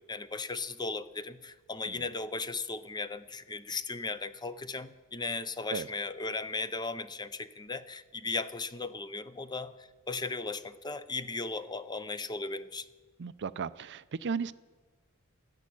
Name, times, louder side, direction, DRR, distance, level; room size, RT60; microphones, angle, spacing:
voice 1, 0.0-12.9, left 3 dB, 20° left, 0.6 m, -37 dB
voice 2, 13.2-14.5, right 5 dB, 55° right, 0.5 m, -35 dB
13.5 x 10.5 x 9.9 m
head